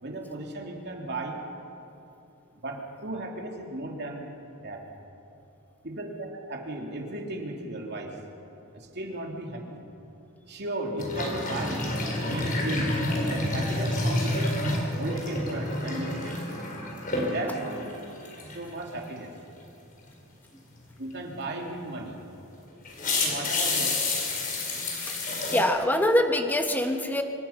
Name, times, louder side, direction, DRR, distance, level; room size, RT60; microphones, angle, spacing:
voice 1, 0.0-1.4 2.6-4.3 4.6-4.9 5.8-8.2 8.7-9.8 10.5-11.8 12.2-14.6 15.0-16.4 17.3-17.9 18.5-19.3 21.0-22.2 23.2-24.1, right 1 dB, 50° right, 1 dB, 2.9 m, -35 dB
sound 1, 11.0-17.9 18.2-18.7 22.0-22.1 22.8-25.6, left 2 dB, 40° left, 4.5 m, -29 dB
voice 2, 25.2-27.2, left 1 dB, 10° left, 5 dB, 1.4 m, -24 dB
26.0 x 23.5 x 5.8 m, 2.8 s
head